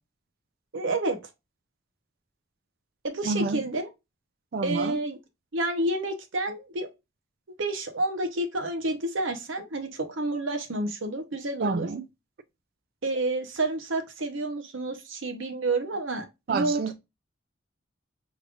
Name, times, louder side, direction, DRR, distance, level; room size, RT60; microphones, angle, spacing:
voice 1, 0.7-1.2 3.0-3.9 4.6-5.2 5.5-6.9 7.6-11.9 13.0-16.8, right 2 dB, 70° right, 0.8 m, -29 dB
voice 2, 3.2-3.6 4.5-5.0 11.6-12.0 16.5-16.9, right 4 dB, 50° right, 0.4 m, -28 dB
5.0 x 3.2 x 2.4 m
head